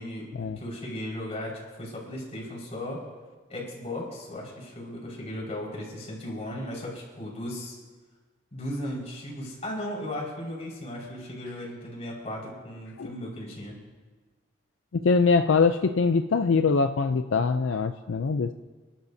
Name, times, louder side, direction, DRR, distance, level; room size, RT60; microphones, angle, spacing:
voice 1, 0.0-3.0 3.5-7.8 8.5-13.7, left 1 dB, 35° left, -3 dB, 5.1 m, -36 dB
voice 2, 14.9-18.5, left 4 dB, 80° left, 8 dB, 0.5 m, -23 dB
30.0 x 12.0 x 2.7 m, 1.3 s
head